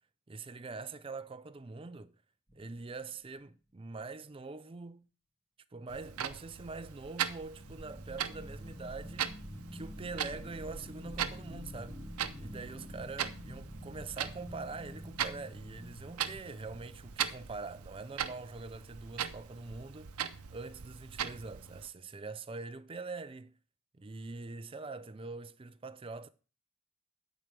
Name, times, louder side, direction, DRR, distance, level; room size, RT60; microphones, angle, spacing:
voice 1, 0.3-2.2 2.5-5.1 5.7-9.4 9.7-12.0 12.4-23.5 24.0-26.3, right 3 dB, 25° right, 0.4 m, -44 dB
sound 1, 2.5-3.1 7.4-17.6, equal, 5° left, 0.9 m, -47 dB
Clock, 5.9-21.9, right 8 dB, 85° right, 0.7 m, -40 dB
8.8 x 4.6 x 7.3 m
head